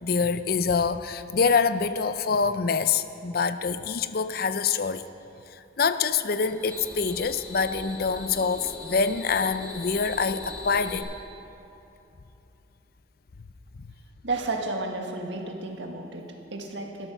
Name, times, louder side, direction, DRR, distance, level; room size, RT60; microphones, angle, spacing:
voice 1, 0.0-5.1 5.8-11.1, left 5 dB, 55° left, 12 dB, 0.5 m, -25 dB
sound 1, 6.2-11.0, left 2 dB, 20° right, 2.1 m, -40 dB
voice 2, 14.2-17.1, right 2 dB, 80° right, 3 dB, 1.6 m, -32 dB
13.5 x 13.0 x 5.9 m, 2.9 s
head